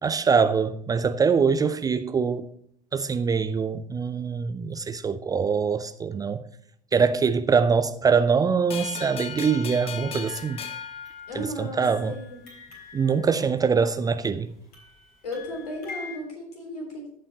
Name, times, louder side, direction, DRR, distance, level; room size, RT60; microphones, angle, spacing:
voice 1, 0.0-2.4 2.9-6.4 6.9-10.6 11.3-12.2 12.9-14.5, right 5 dB, 15° right, 0.5 m, -23 dB
sound 1, 8.7-11.9, left 7 dB, 30° left, 0.9 m, -37 dB
sound 2, 10.2-11.4 11.8-14.1 14.7-16.2, left 4 dB, 45° left, 3.6 m, -45 dB
voice 2, 11.3-12.4 15.2-17.1, left 1 dB, 70° left, 3.5 m, -35 dB
15.0 x 5.5 x 4.1 m
figure-of-eight pair, 70°, 21 cm